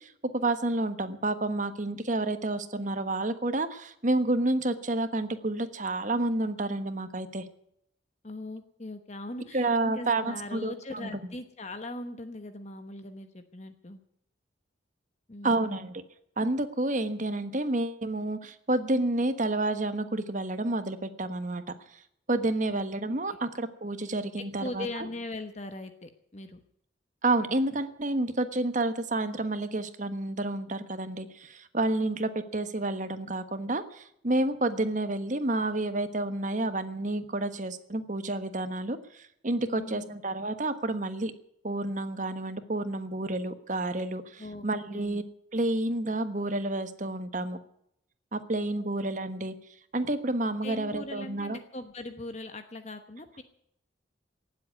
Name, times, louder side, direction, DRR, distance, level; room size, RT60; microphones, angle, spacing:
voice 1, 0.0-7.4 9.5-11.1 15.4-16.0 16.4-21.6 21.9-22.0 22.3-24.9 27.2-41.3 41.6-45.2 45.5-47.6 48.3-49.5 49.9-51.6, right 2 dB, 40° right, 10 dB, 1.3 m, -30 dB
voice 2, 8.2-14.0 15.3-15.9 22.7-22.9 23.3-23.4 24.1-26.6 39.6-40.2 44.4-45.2 48.8-48.9 50.6-53.4, left 2 dB, 35° left, 8 dB, 1.0 m, -40 dB
18.5 x 7.8 x 9.5 m, 0.71 s
head